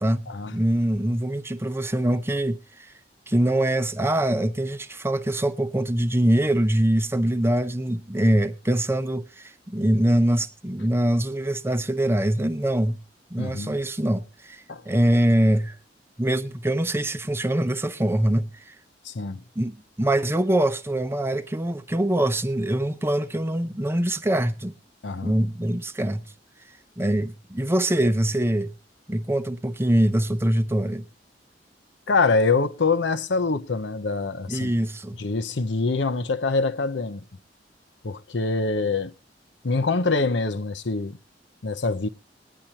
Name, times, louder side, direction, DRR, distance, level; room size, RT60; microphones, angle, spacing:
voice 1, 0.5-2.9 3.3-13.0 13.3-15.8 16.2-18.7 19.6-24.7 25.2-26.3 27.0-28.7 29.1-31.0 34.5-35.2, right 1 dB, 15° right, 0.7 m, -23 dB
voice 2, 13.4-13.7 14.7-14.8 19.0-19.4 25.0-25.3 32.1-34.7 35.2-37.2 38.0-39.1 39.6-41.2 41.6-42.1, left 3 dB, 80° left, 0.8 m, -24 dB
20.0 x 10.5 x 2.9 m
head